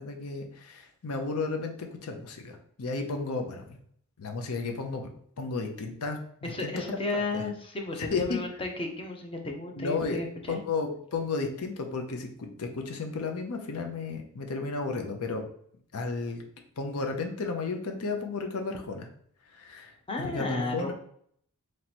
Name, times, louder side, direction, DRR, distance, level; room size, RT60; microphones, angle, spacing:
voice 1, 0.0-3.8 4.2-5.1 5.4-6.2 6.6-7.0 7.3-7.4 8.1-8.4 9.8-10.2 10.5-15.4 15.9-16.4 16.8-19.1 19.5-19.9 20.2-20.9, left 4 dB, 75° left, 4 dB, 0.6 m, -33 dB
voice 2, 6.4-10.6 20.1-20.9, left 2 dB, 25° left, 2 dB, 0.6 m, -33 dB
3.2 x 2.9 x 4.2 m, 0.64 s
head